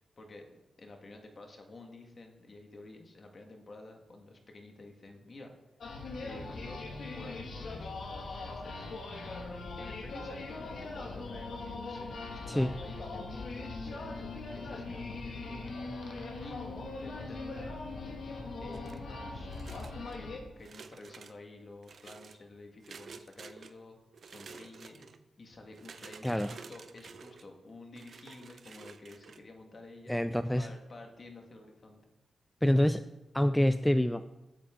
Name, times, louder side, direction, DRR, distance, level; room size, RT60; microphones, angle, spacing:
voice 1, 0.2-5.5 6.1-8.9 9.7-15.9 16.4-17.7 18.6-19.5 20.2-24.0 24.2-25.1 25.4-30.2 30.6-32.0, left 2 dB, 35° left, 3 dB, 1.8 m, -51 dB
sound 1, 5.8-20.4, left 3 dB, 55° left, 2.0 m, -40 dB
sound 2, 18.7-19.1 19.5-20.2 20.6-21.4 21.8-22.4 22.8-23.7 24.1-25.2 25.7-27.5 28.0-29.4, right 5 dB, 50° right, 0.7 m, -51 dB
voice 2, 26.2-26.5 30.1-30.7 32.6-33.0 33.3-34.2, left 1 dB, 5° left, 10 dB, 0.3 m, -26 dB
16.0 x 9.4 x 3.8 m, 1.0 s
wide cardioid pair, 170°, 0 cm